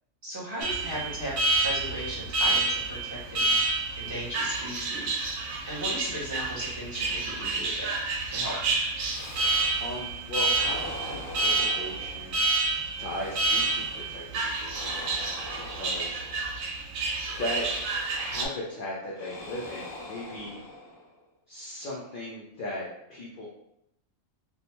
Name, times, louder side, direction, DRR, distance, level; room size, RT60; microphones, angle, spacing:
voice 1, 0.2-3.5 4.0-7.9 8.3-8.6, equal, 50° right, -6 dB, 0.9 m, -37 dB
Alarm, 0.6-18.5, right 3 dB, 85° right, 1.0 m, -29 dB
sound 1, 9.1-10.2 10.5-12.5 13.0-14.2 14.7-16.7 17.2-18.6 19.1-21.2, left 1 dB, 75° left, 1.1 m, -43 dB
voice 2, 9.8-12.4 12.7-16.2 17.4-17.7 18.2-20.6 21.5-23.5, left 1 dB, 60° left, -5 dB, 0.6 m, -37 dB
2.7 x 2.1 x 2.9 m, 0.78 s
omnidirectional pair, 1.4 m